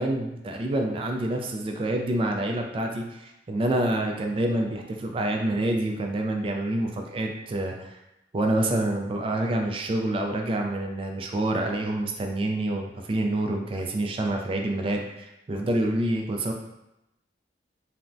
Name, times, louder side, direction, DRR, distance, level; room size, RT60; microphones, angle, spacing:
voice 1, 0.0-8.0 8.3-15.0 15.5-16.5, right 1 dB, 30° right, 2 dB, 0.3 m, -27 dB
3.3 x 2.0 x 2.5 m, 0.90 s
head